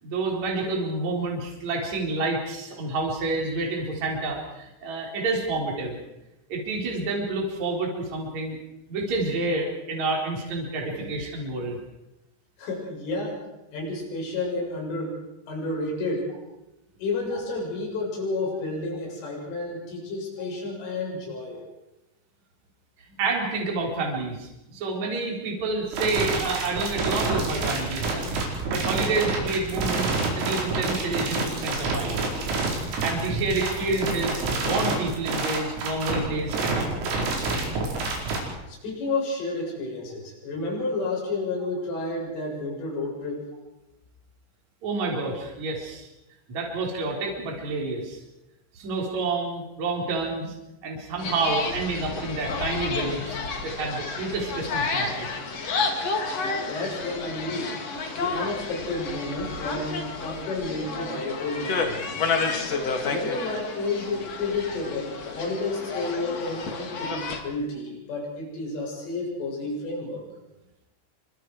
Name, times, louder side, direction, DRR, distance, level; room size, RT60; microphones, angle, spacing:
voice 1, 0.0-6.0 6.5-8.6 8.9-11.8 23.2-32.2 33.0-36.9 44.8-46.1 46.5-48.2 48.7-50.5 50.8-53.4 53.6-55.3, right 3 dB, 35° right, -1 dB, 5.0 m, -29 dB
voice 2, 12.6-13.4 13.7-15.2 15.5-16.3 17.0-21.6 25.5-25.6 38.7-43.5 55.9-56.0 56.4-57.8 58.2-62.2 62.7-70.2, left 2 dB, 70° left, -2 dB, 10.0 m, -31 dB
sound 1, 25.9-38.4, right 3 dB, 90° right, 7.7 m, -27 dB
sound 2, 51.2-67.4, left 4 dB, 45° left, 2.4 m, -31 dB
28.5 x 25.0 x 4.9 m, 0.95 s
omnidirectional pair, 6.0 m